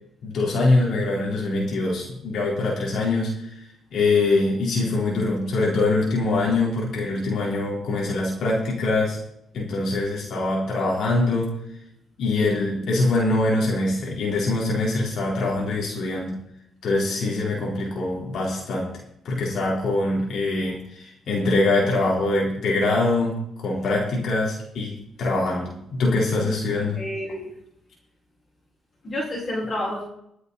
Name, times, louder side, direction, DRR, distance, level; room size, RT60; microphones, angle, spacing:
voice 1, 0.2-3.5 3.9-9.2 9.5-11.5 12.2-16.4 16.8-18.9 19.2-27.0, left 2 dB, 65° left, -3 dB, 4.1 m, -23 dB
voice 2, 27.0-27.5 29.0-30.0, left 1 dB, 40° left, -4 dB, 5.2 m, -29 dB
21.5 x 8.0 x 4.1 m, 0.75 s
cardioid pair, 90°, 0 cm